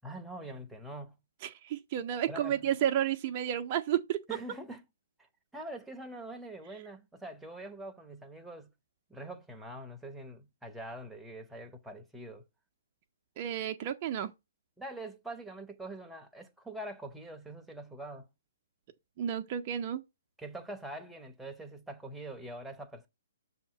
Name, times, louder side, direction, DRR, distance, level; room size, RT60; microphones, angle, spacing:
voice 1, 0.0-1.2 2.3-2.6 4.3-4.8 5.5-8.7 9.1-12.5 14.8-18.3 20.4-23.1, right 1 dB, 5° right, 0.8 m, -44 dB
voice 2, 1.4-4.2 13.4-14.3 19.2-20.0, right 10 dB, 40° right, 0.6 m, -31 dB
7.0 x 2.8 x 5.9 m
figure-of-eight pair, 125°, 0 cm